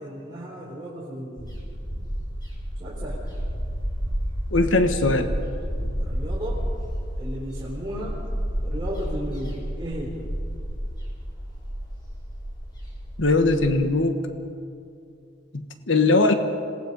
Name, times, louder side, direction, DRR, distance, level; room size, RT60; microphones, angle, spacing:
voice 1, 0.0-1.5 2.8-3.2 6.0-6.6 7.2-8.2 8.6-10.3, equal, 20° right, -6 dB, 3.7 m, -35 dB
sound 1, 1.4-13.6, equal, 20° left, 4.7 m, -31 dB
voice 2, 4.5-5.3 13.2-14.2 15.5-16.3, left 2 dB, 80° left, 7 dB, 1.4 m, -20 dB
27.0 x 18.5 x 5.4 m, 2.5 s
head